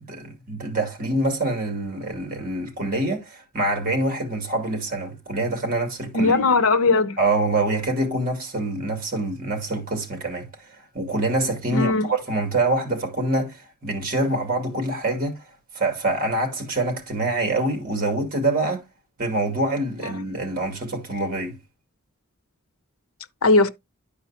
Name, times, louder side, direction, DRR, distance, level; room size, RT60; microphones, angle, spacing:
voice 1, 0.0-6.4 7.2-15.4 15.7-18.9 19.2-21.6, right 2 dB, 40° right, 2.6 m, -25 dB
voice 2, 6.1-7.2 11.7-12.1 20.0-20.1 23.4-23.7, left 3 dB, 80° left, 0.8 m, -19 dB
11.5 x 4.8 x 2.9 m
head